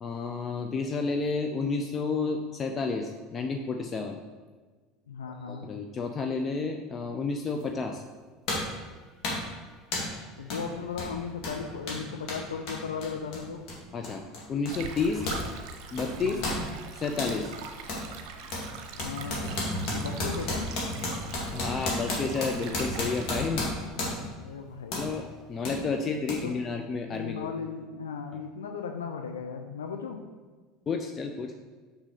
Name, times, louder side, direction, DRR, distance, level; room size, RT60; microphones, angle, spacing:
voice 1, 0.0-4.2 5.5-8.0 13.9-14.2 14.5-15.2 15.9-16.4 16.9-17.5 18.0-18.1 18.4-18.5 21.5-23.7 24.9-27.5 28.3-28.4 30.9-31.5, left 4 dB, 30° left, 4 dB, 0.6 m, -31 dB
voice 2, 5.1-5.7 10.4-13.6 16.2-16.5 18.9-19.5 19.8-20.7 24.1-25.0 26.4-26.5 27.1-30.2, left 6 dB, 75° left, 4 dB, 0.5 m, -37 dB
sound 1, 7.6-7.7 8.5-8.8 9.2-9.5 9.9-10.2 10.5-10.7 10.9-15.5 15.7-17.4 17.9-18.1 18.5-24.4 24.9-25.1 25.6-25.8 26.3-26.4, left 1 dB, 50° left, 2.2 m, -33 dB
Stream, 14.7-23.5, right 5 dB, 55° right, 0.9 m, -43 dB
6.2 x 6.2 x 4.0 m, 1.4 s
figure-of-eight pair, 70°, 0 cm